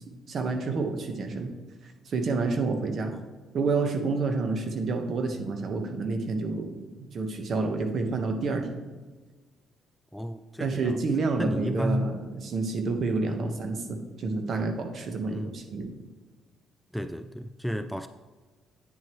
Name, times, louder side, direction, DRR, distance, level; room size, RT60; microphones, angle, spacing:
voice 1, 0.3-1.5 1.8-3.1 3.5-8.8 10.6-15.9, right 3 dB, 55° right, 5 dB, 1.2 m, -29 dB
voice 2, 10.1-11.0 11.3-12.2 13.3-13.6 15.2-15.6 16.9-18.1, equal, ahead, 9 dB, 0.4 m, -32 dB
9.2 x 7.7 x 3.1 m, 1.3 s
cardioid pair, 90°, 0 cm